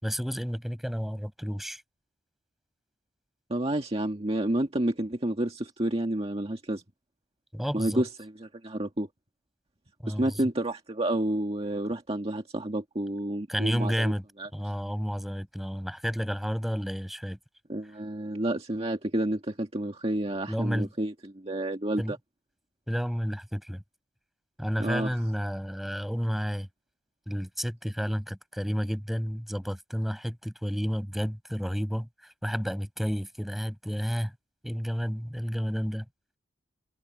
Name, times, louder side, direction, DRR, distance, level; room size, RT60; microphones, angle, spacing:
voice 1, 0.0-1.8 7.5-8.0 10.0-10.4 13.5-14.2 14.5-17.4 20.5-20.9 22.0-22.1 22.9-23.8 24.6-26.7 27.3-32.1 32.4-34.3 34.6-36.0, equal, ahead, 5.8 m, -31 dB
voice 2, 3.5-6.8 7.7-9.1 10.1-14.1 14.4-14.5 17.7-22.2 24.8-25.2, right 1 dB, 30° right, 1.8 m, -30 dB
head